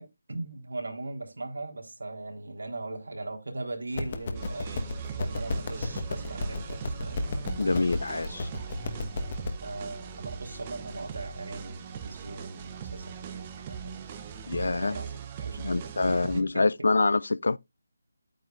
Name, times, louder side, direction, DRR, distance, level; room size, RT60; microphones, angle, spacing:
voice 1, 0.0-7.6 9.6-14.2 14.5-16.9, right 2 dB, 80° right, 3.6 m, -39 dB
sound 1, 3.9-9.5, left 2 dB, 30° left, 1.3 m, -34 dB
sound 2, 4.3-16.4, right 7 dB, 15° right, 0.8 m, -40 dB
voice 2, 7.6-8.5 14.5-15.0 15.6-17.6, left 3 dB, 65° left, 0.4 m, -26 dB
10.0 x 9.0 x 2.4 m
figure-of-eight pair, 175°, 0 cm